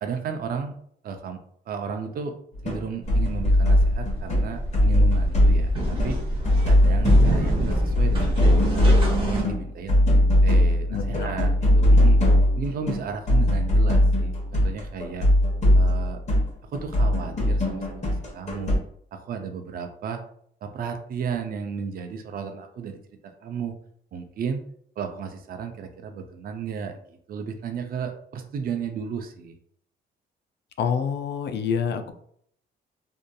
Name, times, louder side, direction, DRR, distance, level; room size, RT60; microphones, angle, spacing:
voice 1, 0.0-0.8 1.0-2.3 2.6-6.2 6.7-10.0 10.4-12.2 12.6-15.3 15.7-16.2 16.7-18.7 19.1-20.2 20.6-23.7 24.1-24.6 25.0-29.5, right 6 dB, 50° right, 5 dB, 0.4 m, -34 dB
sound 1, 2.5-2.8 3.1-4.5 4.7-6.2 6.4-18.8, left 1 dB, 35° left, 1.1 m, -20 dB
sound 2, 3.0-9.4, equal, 25° right, 0.9 m, -27 dB
voice 2, 10.9-11.3 30.8-32.1, left 7 dB, 60° left, 8 dB, 0.4 m, -27 dB
2.7 x 2.4 x 2.2 m, 0.64 s
cardioid pair, 90°, 20 cm